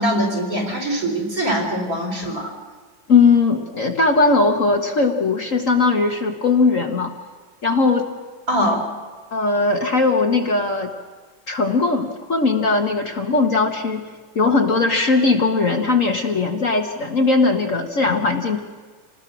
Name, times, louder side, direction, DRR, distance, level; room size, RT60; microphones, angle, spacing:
voice 1, 0.0-2.5 8.5-8.8, equal, 45° right, 2 dB, 4.7 m, -22 dB
voice 2, 3.1-7.1 7.6-8.1 9.3-10.9 11.5-14.1 14.3-18.6, left 3 dB, 45° left, 4 dB, 1.6 m, -19 dB
27.5 x 19.5 x 6.2 m, 1.4 s
omnidirectional pair, 2.1 m